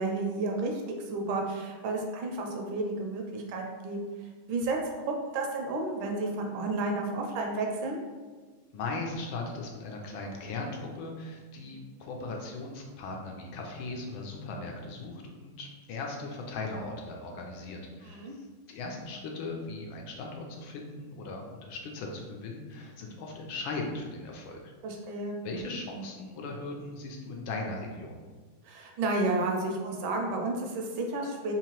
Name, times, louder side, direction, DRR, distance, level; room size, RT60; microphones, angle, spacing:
voice 1, 0.0-4.0 4.5-4.8 5.1-8.0 18.0-18.3 24.8-25.4 28.6-31.5, right 2 dB, 75° right, 1 dB, 1.3 m, -31 dB
voice 2, 8.7-24.7 25.4-28.2, left 3 dB, 75° left, 1 dB, 1.3 m, -38 dB
3.7 x 2.9 x 2.9 m, 1.4 s
omnidirectional pair, 2.3 m